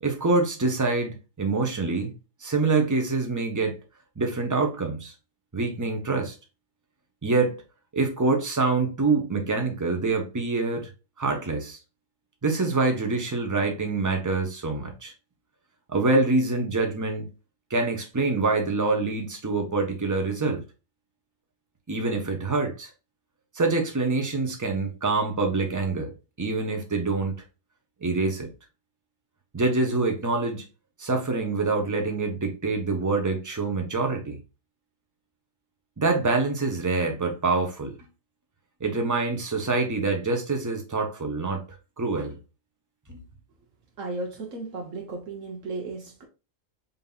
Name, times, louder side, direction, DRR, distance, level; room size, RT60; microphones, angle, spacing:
voice 1, 0.0-2.1 2.4-3.8 4.2-5.1 5.5-6.3 7.2-7.6 7.9-10.9 11.2-11.8 12.4-15.1 15.9-17.3 17.7-20.6 21.9-22.9 23.5-27.4 28.0-28.5 29.5-30.6 31.0-34.4 36.0-38.0 38.8-41.6 42.0-42.4 43.1-43.2, right 3 dB, 15° right, 0.7 m, -25 dB
voice 2, 44.0-46.3, right 3 dB, 75° right, 1.2 m, -35 dB
5.4 x 2.8 x 2.3 m
omnidirectional pair, 1.3 m